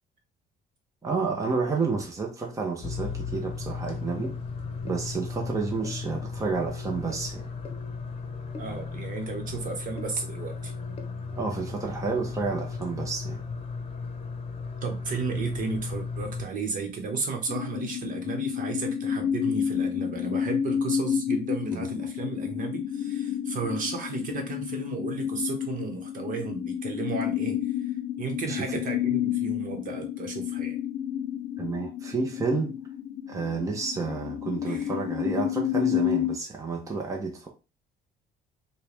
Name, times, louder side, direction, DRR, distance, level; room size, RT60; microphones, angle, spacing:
voice 1, 1.0-4.4 4.8-7.5 11.4-13.4 21.7-21.8 28.5-28.8 31.6-32.8 33.3-37.5, right 4 dB, 20° right, 0.9 m, -30 dB
sound 1, 2.8-16.4, left 4 dB, 35° left, 0.9 m, -35 dB
voice 2, 8.6-10.7 14.8-30.8 34.6-34.9, right 4 dB, 55° right, 1.2 m, -34 dB
sound 2, 17.5-36.4, left 9 dB, 65° left, 0.4 m, -30 dB
4.5 x 2.3 x 3.4 m
cardioid pair, 110°, 17 cm